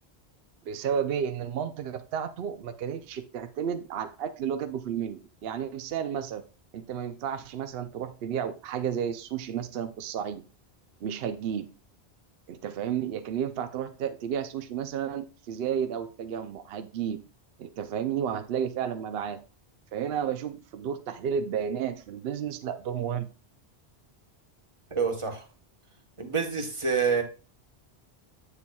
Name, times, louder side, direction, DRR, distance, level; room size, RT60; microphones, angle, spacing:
voice 1, 0.7-6.4 6.7-10.4 11.0-11.7 12.5-17.2 17.6-19.4 19.9-23.3, right 8 dB, 70° right, 10 dB, 0.8 m, -32 dB
voice 2, 24.9-25.4 26.2-27.2, right 5 dB, 30° right, 5 dB, 1.2 m, -27 dB
8.5 x 6.8 x 2.3 m, 0.34 s
omnidirectional pair, 1.1 m